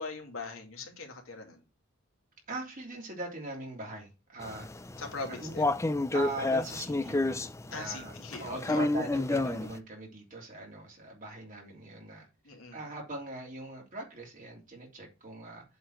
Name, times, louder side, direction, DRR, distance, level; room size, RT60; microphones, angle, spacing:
voice 1, 0.0-1.6 5.0-5.7 7.7-8.9 12.4-12.8, left 3 dB, 80° left, 2.3 m, -41 dB
voice 2, 2.5-5.0 5.4-5.5 6.1-7.4 7.7-15.6, right 2 dB, 40° right, 3.2 m, -41 dB
sound 1, 4.4-9.8, left 2 dB, 15° left, 0.4 m, -30 dB
7.8 x 4.3 x 6.5 m
head